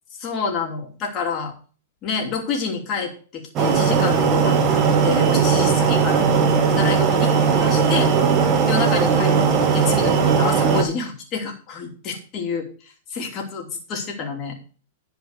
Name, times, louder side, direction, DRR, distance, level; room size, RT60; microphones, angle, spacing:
voice 1, 0.1-1.5 2.0-8.1 8.7-14.5, left 5 dB, 35° left, 1 dB, 3.0 m, -28 dB
sound 1, 3.6-10.8, right 6 dB, 30° right, 2.1 m, -18 dB
10.5 x 5.3 x 6.7 m, 0.39 s
hypercardioid pair, 135°, 0 cm